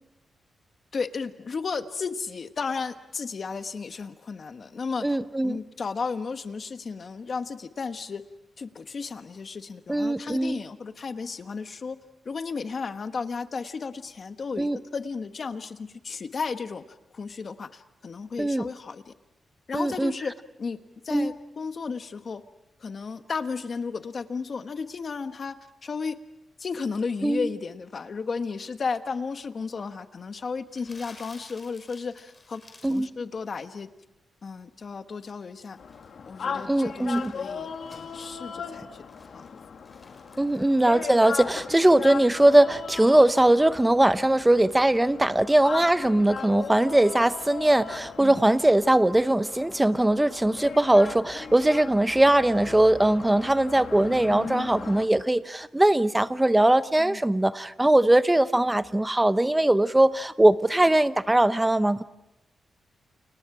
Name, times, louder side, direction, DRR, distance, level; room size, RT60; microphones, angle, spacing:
voice 1, 0.9-5.2 5.4-8.2 8.6-12.0 12.2-19.1 19.7-20.3 20.6-20.8 21.0-22.4 22.8-25.5 25.8-26.2 26.6-32.6 32.9-33.9 34.4-35.8 36.2-39.0 39.3-39.5 48.2-48.6 57.0-57.2 58.6-58.7, left 5 dB, 45° left, 9 dB, 1.3 m, -34 dB
voice 2, 5.0-5.6 9.9-10.6 14.6-14.8 18.4-18.7 19.7-20.1 21.1-21.3 27.2-27.5 32.8-33.1 36.7-37.3 40.4-62.0, right 1 dB, 10° right, 13 dB, 0.8 m, -21 dB
Crumpling crinkling, 30.7-33.1 33.4-33.8 35.5-38.4 38.9-41.2, left 2 dB, 20° left, 5.8 m, -53 dB
sound 1, 35.8-55.1, left 6 dB, 60° left, 2.0 m, -38 dB
30.0 x 29.5 x 5.0 m, 0.91 s
wide cardioid pair, 140°, 0 cm